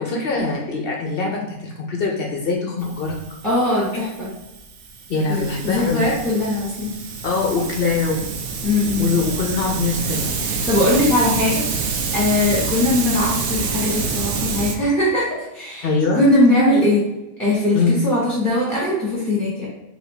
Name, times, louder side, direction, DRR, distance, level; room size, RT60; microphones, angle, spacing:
voice 1, 0.0-3.2 5.1-6.0 7.2-8.3 9.0-10.3 15.8-16.2 17.7-18.0, left 4 dB, 65° left, 0 dB, 0.5 m, -22 dB
Hiss, 2.8-14.7, right 5 dB, 75° right, 1.0 m, -27 dB
voice 2, 3.4-4.3 5.3-6.9 8.6-9.1 10.4-11.9 12.1-17.0 17.4-19.7, left 1 dB, ahead, -8 dB, 0.8 m, -20 dB
4.1 x 2.8 x 3.2 m, 0.97 s
omnidirectional pair, 1.6 m